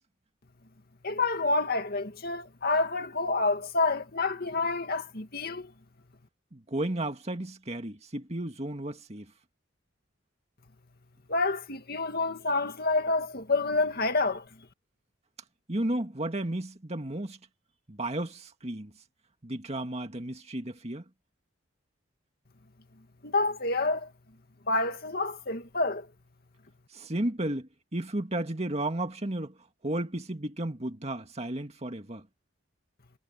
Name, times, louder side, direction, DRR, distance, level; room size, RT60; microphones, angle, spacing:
voice 1, 1.0-5.7 11.3-14.4 23.2-24.1 24.7-26.0, left 3 dB, 50° left, 2.2 m, -28 dB
voice 2, 6.5-9.3 15.7-17.4 17.9-18.9 19.4-21.0 26.9-29.5 29.8-32.2, right 1 dB, 30° right, 2.1 m, -33 dB
head